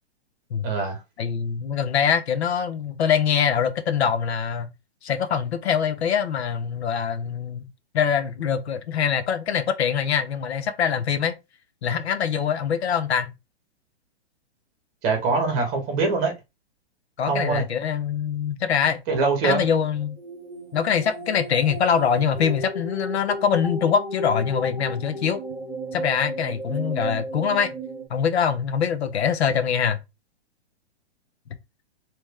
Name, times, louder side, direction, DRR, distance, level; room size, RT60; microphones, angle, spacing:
voice 1, 0.6-1.0 15.0-16.3 17.3-17.6 19.1-19.6, right 4 dB, 25° right, 1.5 m, -23 dB
voice 2, 1.2-4.7 5.0-7.7 7.9-11.3 11.8-13.3 17.2-19.0 19.4-20.2 20.7-25.4 25.9-27.7 28.1-30.0, left 7 dB, 75° left, 0.9 m, -23 dB
sound 1, 19.3-28.1, right 1 dB, 5° left, 1.3 m, -34 dB
3.1 x 3.1 x 3.5 m
hypercardioid pair, 165°, 33 cm